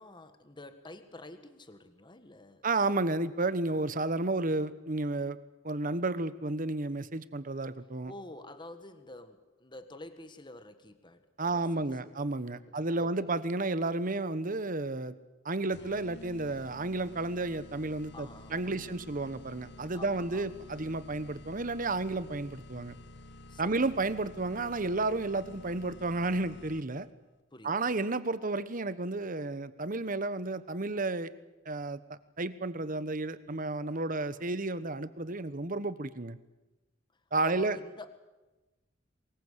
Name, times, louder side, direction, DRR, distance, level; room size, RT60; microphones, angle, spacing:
voice 1, 0.0-2.7 8.1-12.1 12.7-13.3 18.1-19.3 19.9-20.5 23.5-23.8 27.5-28.0 37.4-38.2, left 2 dB, 25° left, 9 dB, 1.5 m, -49 dB
voice 2, 2.6-5.4 5.6-8.1 11.4-15.1 15.4-23.0 23.6-27.1 27.6-31.3 31.6-32.0 32.4-36.4 37.3-37.8, right 2 dB, 45° right, 14 dB, 1.1 m, -32 dB
sound 1, 15.7-27.1, left 1 dB, 60° left, 0.9 m, -51 dB
24.0 x 21.0 x 8.2 m, 1.1 s
head